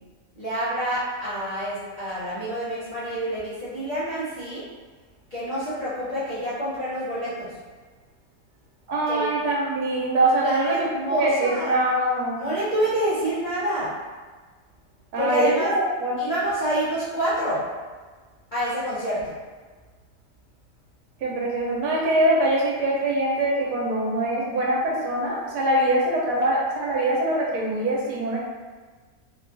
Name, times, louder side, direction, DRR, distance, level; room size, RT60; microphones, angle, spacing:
voice 1, 0.4-4.6 5.3-7.5 9.1-9.3 10.4-11.7 12.4-13.9 15.2-15.7 16.2-17.6 18.5-19.3, right 1 dB, 45° left, -13 dB, 0.7 m, -27 dB
voice 2, 8.9-12.5 15.1-16.2 21.2-28.4, right 1 dB, 80° right, -4 dB, 1.2 m, -23 dB
3.0 x 2.3 x 2.5 m, 1.4 s
omnidirectional pair, 1.7 m